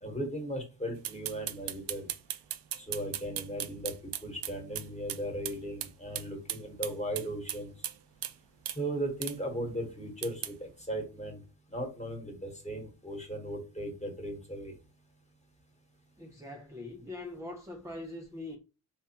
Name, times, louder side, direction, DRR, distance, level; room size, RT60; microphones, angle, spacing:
voice 1, 0.0-2.1 2.8-3.9 4.2-7.7 8.7-11.4 11.7-14.8, right 1 dB, 15° left, 1.2 m, -37 dB
sound 1, 1.0-5.2 5.4-5.6 5.8-5.9 6.1-8.0 8.2-8.3 8.7-8.8 9.2-9.4 10.2-10.5, right 12 dB, 70° right, 0.5 m, -36 dB
voice 2, 16.2-18.6, left 2 dB, 10° right, 0.4 m, -42 dB
3.5 x 2.7 x 2.9 m
cardioid pair, 95°, 43 cm